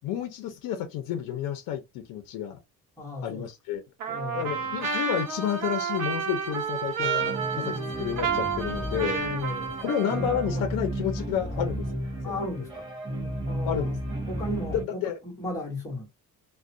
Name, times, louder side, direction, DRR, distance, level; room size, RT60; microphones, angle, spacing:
voice 1, 0.0-2.6 3.2-3.8 4.3-9.1 9.8-11.9 12.2-12.4 13.6-14.0 14.7-15.2, left 9 dB, 70° left, 0.5 m, -30 dB
voice 2, 3.0-3.4 4.1-4.8 9.0-10.7 12.2-12.9 13.4-14.0 14.3-16.1, left 1 dB, 10° left, 1.1 m, -36 dB
Trumpet, 4.0-10.6, right 6 dB, 70° right, 0.8 m, -31 dB
Bowed string instrument, 4.8-10.3, right 7 dB, 40° right, 0.9 m, -48 dB
sound 1, 7.0-14.8, right 1 dB, 15° right, 0.6 m, -33 dB
2.3 x 2.1 x 2.5 m
cardioid pair, 170°, 33 cm